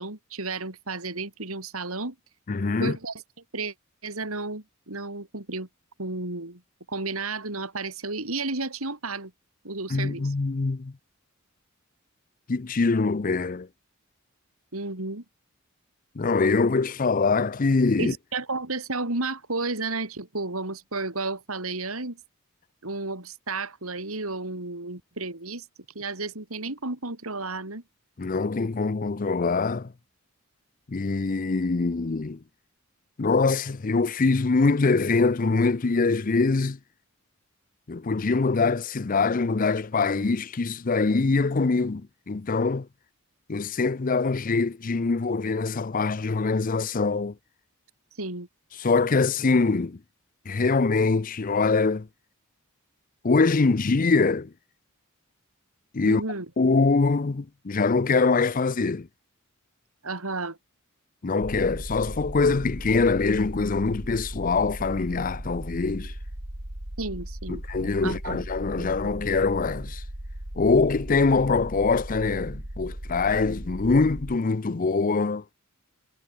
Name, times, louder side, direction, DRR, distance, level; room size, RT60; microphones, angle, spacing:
voice 1, 0.0-2.2 2.8-3.1 3.5-3.7 4.0-5.7 6.0-6.6 6.9-9.3 9.6-10.3 14.7-15.2 18.0-22.2 22.8-25.7 26.0-27.8 48.2-48.5 56.0-56.5 60.0-60.6 67.0-67.6 68.0-68.5 68.8-69.2, right 3 dB, 85° right, 3.8 m, -32 dB
voice 2, 2.5-3.0 9.9-10.9 12.5-13.7 16.2-18.1 28.2-29.9 30.9-32.4 33.2-36.8 37.9-42.9 43.5-47.3 48.8-50.0 50.5-52.1 53.2-54.5 55.9-56.2 56.6-59.1 61.2-66.1 67.5-70.0 70.6-75.4, left 4 dB, 40° left, 0.6 m, -23 dB
sound 1, 61.4-74.4, right 1 dB, 65° right, 3.8 m, -37 dB
head